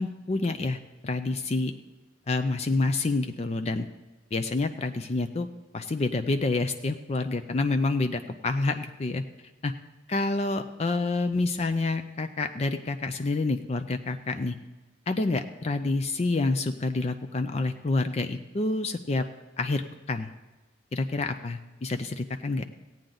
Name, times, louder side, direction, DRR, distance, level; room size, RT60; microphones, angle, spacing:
voice 1, 0.0-1.7 2.3-3.9 4.3-5.5 5.7-9.2 9.6-9.7 10.1-14.5 15.1-19.2 19.6-20.3 20.9-22.6, left 3 dB, 35° left, 8 dB, 0.4 m, -28 dB
16.0 x 8.9 x 3.9 m, 1.2 s
head